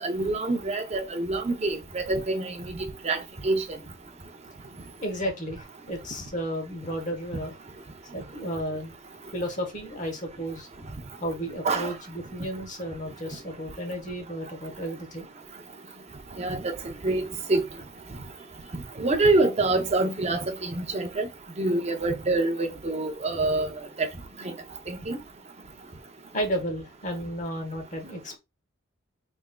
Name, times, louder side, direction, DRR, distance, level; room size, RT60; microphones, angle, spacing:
voice 1, 0.0-3.6 11.6-11.9 16.4-16.7 17.0-17.6 18.7-21.3 21.6-23.7 24.0-24.1 24.4-24.5 24.9-25.2, right 2 dB, 30° right, 0.6 m, -26 dB
voice 2, 5.0-7.6 8.1-8.9 9.3-10.7 11.2-15.3 26.3-28.4, equal, 40° left, 1.0 m, -33 dB
3.5 x 3.4 x 2.2 m
head